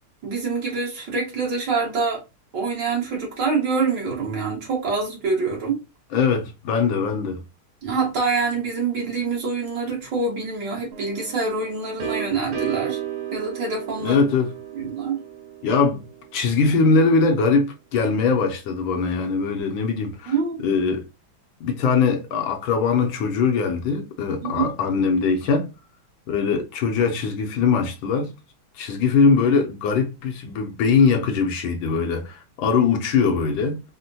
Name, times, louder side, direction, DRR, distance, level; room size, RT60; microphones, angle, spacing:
voice 1, 0.2-2.2 2.5-5.8 7.8-13.0 13.3-14.2 14.7-15.2 20.3-20.6 24.4-24.7, right 4 dB, 60° right, 1.9 m, -25 dB
voice 2, 6.1-7.4 14.0-14.5 15.6-16.0 16.3-21.0 21.6-25.7 26.3-28.3 28.8-33.8, left 5 dB, 75° left, 1.4 m, -21 dB
sound 1, 10.9-16.6, right 9 dB, 85° right, 1.8 m, -34 dB
4.2 x 2.1 x 2.6 m
omnidirectional pair, 2.3 m